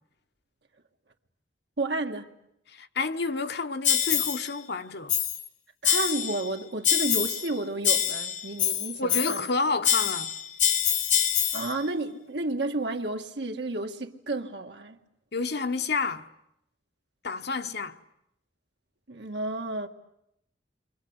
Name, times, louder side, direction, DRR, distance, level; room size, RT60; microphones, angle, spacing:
voice 1, 1.8-2.3 5.8-9.5 11.5-15.0 19.1-19.9, right 2 dB, 70° right, 2.0 m, -31 dB
voice 2, 2.7-5.2 9.0-10.3 15.3-16.3 17.2-18.0, left 4 dB, 65° left, 1.2 m, -30 dB
sound 1, 3.8-4.5 5.1-5.5 5.8-6.5 6.8-7.5 7.8-9.5 9.8-11.7, left 9 dB, 45° left, 1.2 m, -25 dB
29.5 x 24.5 x 8.1 m
head